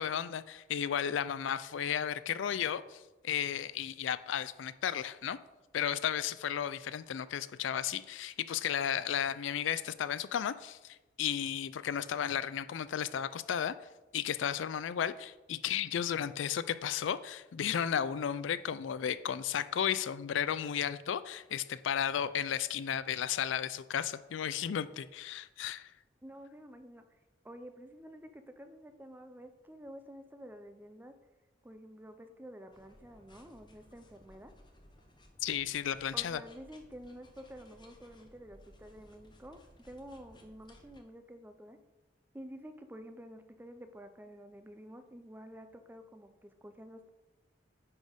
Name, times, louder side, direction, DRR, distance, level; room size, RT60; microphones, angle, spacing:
voice 1, 0.0-5.4 5.7-13.7 14.1-25.9 35.4-36.4, left 9 dB, 75° left, 15 dB, 0.4 m, -34 dB
voice 2, 26.2-27.2 27.4-31.1 31.6-34.5 36.1-41.8 42.3-47.1, equal, 10° right, 8 dB, 0.5 m, -50 dB
sound 1, 32.7-41.0, left 1 dB, 25° left, 0.9 m, -60 dB
9.7 x 4.2 x 5.1 m, 1.1 s
head